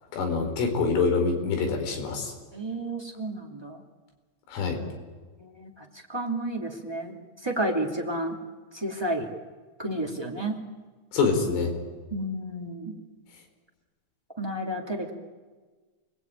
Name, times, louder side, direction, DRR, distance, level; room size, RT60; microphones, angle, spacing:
voice 1, 0.1-2.3 4.5-4.8 11.1-11.7, left 4 dB, 80° left, 4 dB, 7.1 m, -25 dB
voice 2, 2.5-3.8 5.4-7.2 7.4-8.3 8.7-9.3 9.8-10.6 12.1-13.0 14.4-15.1, right 1 dB, 10° right, -1 dB, 1.2 m, -31 dB
28.5 x 21.0 x 9.3 m, 1.4 s
omnidirectional pair, 5.6 m